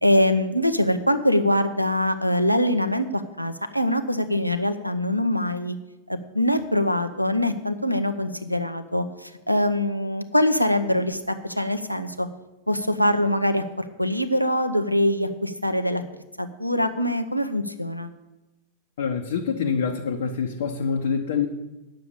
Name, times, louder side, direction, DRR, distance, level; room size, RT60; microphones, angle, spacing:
voice 1, 0.0-5.8 6.1-12.3 12.7-16.0 16.4-18.1, left 1 dB, 90° left, 8 dB, 0.7 m, -23 dB
voice 2, 19.0-21.5, left 6 dB, 60° left, 1 dB, 0.9 m, -26 dB
9.1 x 6.9 x 8.5 m, 1.0 s
figure-of-eight pair, 90°, 0 cm